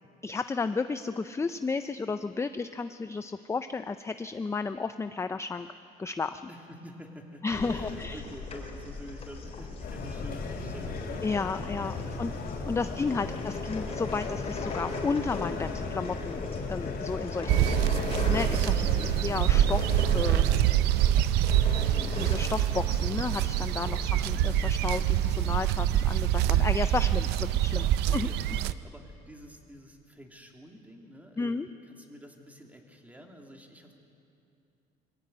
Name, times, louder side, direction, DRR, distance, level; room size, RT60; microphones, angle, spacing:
voice 1, 0.2-5.7 6.0-6.4 7.4-8.2 11.2-12.3 12.7-17.7 18.3-20.4 22.0-27.9 28.1-28.3 31.4-31.7, left 4 dB, 15° left, 10 dB, 0.5 m, -33 dB
voice 2, 6.5-11.3 12.1-12.4 12.9-13.0 13.4-13.6 17.4-17.6 24.1-24.4 28.1-31.5 31.8-33.9, equal, 10° right, 2 dB, 2.7 m, -48 dB
sound 1, 7.5-25.5, left 3 dB, 35° left, 3.7 m, -38 dB
sound 2, 9.8-20.6, left 3 dB, 60° left, 3.8 m, -38 dB
sound 3, 17.5-28.7, right 12 dB, 90° right, 0.6 m, -25 dB
23.0 x 15.5 x 9.4 m, 2.7 s
cardioid pair, 110°, 17 cm